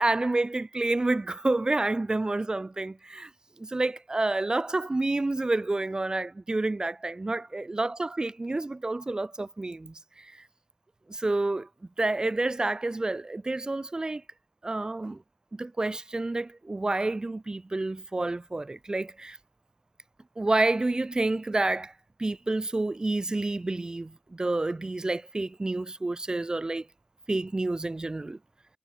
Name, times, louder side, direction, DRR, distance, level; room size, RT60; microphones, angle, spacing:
voice 1, 0.0-3.3 3.6-10.3 11.1-11.7 12.0-14.2 14.6-15.2 15.5-19.4 20.4-21.9 22.2-26.9 27.3-28.4, right 2 dB, 30° right, 0.6 m, -29 dB
wide cardioid pair, 65°, 3 cm